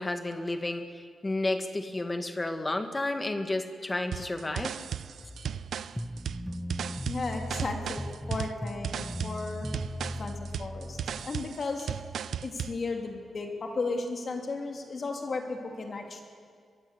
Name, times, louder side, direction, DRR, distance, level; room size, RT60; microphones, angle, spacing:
voice 1, 0.0-4.8 5.2-5.3, left 2 dB, 20° left, 7 dB, 1.6 m, -32 dB
sound 1, 4.1-12.8, right 8 dB, 80° right, 0.6 m, -36 dB
sound 2, 5.9-11.3, equal, ahead, 0.8 m, -38 dB
voice 2, 7.0-9.7 10.2-11.0 11.2-11.9 12.4-16.2, left 3 dB, 40° left, 3 dB, 2.7 m, -34 dB
22.5 x 22.0 x 8.1 m, 2.1 s
wide cardioid pair, 150°, 0 cm